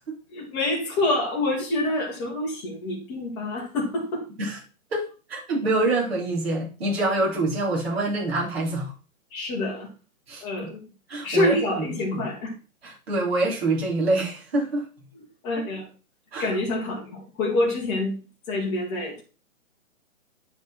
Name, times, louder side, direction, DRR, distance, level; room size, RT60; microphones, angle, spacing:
voice 1, 0.3-4.3 9.3-9.9 10.4-10.8 11.2-12.5 15.4-15.9 16.4-18.2 18.5-19.2, left 2 dB, 10° left, 1.8 m, -26 dB
voice 2, 4.9-8.9 10.3-10.7 11.1-11.9 12.2-12.3 12.8-14.9 16.3-16.5, right 2 dB, 45° right, 4.5 m, -26 dB
9.1 x 5.4 x 4.4 m
hypercardioid pair, 175°, 42 cm